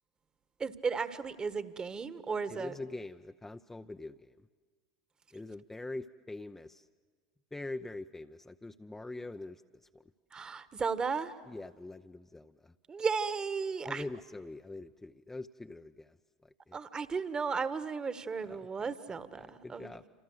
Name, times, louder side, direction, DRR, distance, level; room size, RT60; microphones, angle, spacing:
voice 1, 0.6-2.8 10.3-11.3 12.9-14.1 16.7-19.9, right 5 dB, 25° right, 13 dB, 1.5 m, -35 dB
voice 2, 2.5-4.5 5.3-6.9 7.5-10.0 11.5-12.7 13.8-16.2 16.4-16.8 18.4-18.7 19.3-20.0, left 2 dB, 10° left, 7 dB, 0.7 m, -44 dB
28.0 x 26.5 x 8.0 m, 1.5 s
hypercardioid pair, 80°, 3 cm